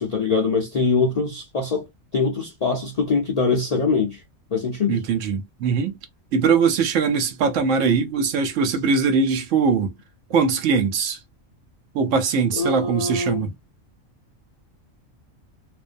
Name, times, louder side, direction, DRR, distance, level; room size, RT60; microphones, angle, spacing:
voice 1, 0.0-1.9 2.1-4.2 4.5-5.0 12.5-13.5, left 4 dB, 75° left, 0.3 m, -23 dB
voice 2, 4.9-5.9 6.3-9.9 10.3-11.2 11.9-13.5, right 5 dB, 70° right, 0.9 m, -21 dB
2.5 x 2.1 x 2.5 m
omnidirectional pair, 1.4 m